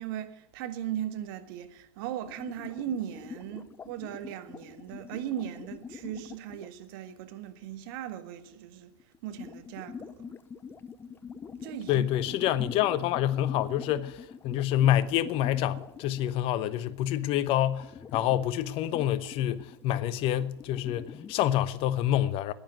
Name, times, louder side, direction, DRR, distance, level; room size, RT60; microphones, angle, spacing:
voice 1, 0.0-8.9 9.2-10.2 11.6-12.1, right 11 dB, 50° right, 1.6 m, -38 dB
sound 1, 2.2-6.7 9.0-16.6 16.8-18.5 18.9-21.3, left 6 dB, 15° left, 0.6 m, -45 dB
voice 2, 11.9-22.5, left 12 dB, 40° left, 0.9 m, -27 dB
10.0 x 9.8 x 9.3 m
hypercardioid pair, 105°, 15 cm